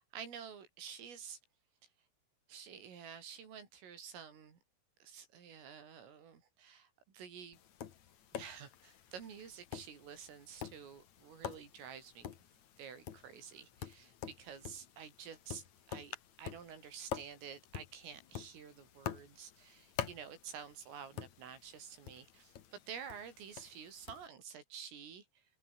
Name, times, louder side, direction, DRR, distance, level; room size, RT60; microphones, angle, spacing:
voice 1, 0.0-1.4 2.5-4.6 5.0-7.6 8.3-12.3 12.8-25.5, right 7 dB, 75° right, 7.0 m, -50 dB
Tap, 7.5-24.3, left 9 dB, 55° left, 2.0 m, -48 dB
open air
omnidirectional pair, 6.0 m